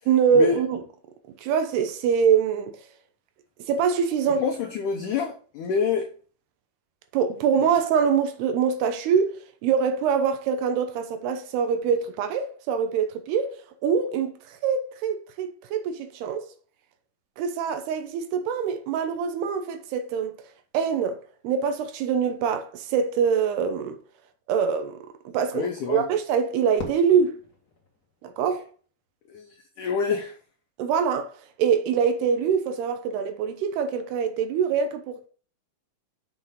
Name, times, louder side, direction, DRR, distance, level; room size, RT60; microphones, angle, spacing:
voice 1, 0.1-0.8 1.4-2.8 3.6-4.4 7.1-9.3 9.6-13.6 13.8-14.4 14.6-16.5 17.4-20.4 20.7-24.0 24.5-25.0 25.3-27.4 28.2-28.6 30.8-31.3 31.6-35.3, right 6 dB, 75° right, 2.8 m, -24 dB
voice 2, 4.4-6.1 25.5-26.0 29.3-30.3, left 6 dB, 80° left, 1.8 m, -27 dB
Fireworks, 26.8-29.0, left 3 dB, 55° left, 1.0 m, -42 dB
7.6 x 6.7 x 3.7 m
omnidirectional pair, 4.9 m